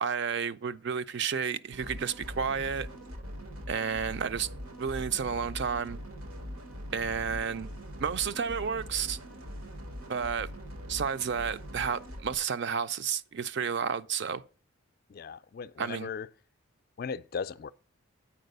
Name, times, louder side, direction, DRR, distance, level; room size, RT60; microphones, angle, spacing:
voice 1, 0.0-2.9 3.7-4.5 4.8-6.0 6.9-7.7 8.0-9.2 10.1-10.5 10.9-14.4 15.8-16.1, right 6 dB, 50° right, 0.4 m, -31 dB
sound 1, 1.7-12.3, equal, 90° right, 1.3 m, -42 dB
voice 2, 15.1-16.3 17.0-17.7, left 6 dB, 45° left, 0.3 m, -37 dB
8.7 x 4.6 x 6.6 m
head